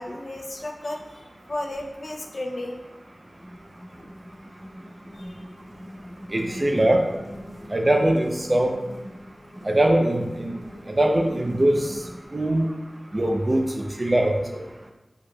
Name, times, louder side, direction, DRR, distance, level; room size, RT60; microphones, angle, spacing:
voice 1, 0.0-2.8 5.1-5.4, left 1 dB, 65° left, 1 dB, 0.6 m, -34 dB
sound 1, 3.1-12.3, equal, 5° left, 1.2 m, -42 dB
voice 2, 6.3-7.0 7.7-8.7 9.6-10.5 10.9-11.9 12.3-12.7 13.1-14.6, right 1 dB, 40° right, 3 dB, 0.6 m, -21 dB
4.7 x 4.6 x 2.3 m, 1.1 s
wide cardioid pair, 50°, 0 cm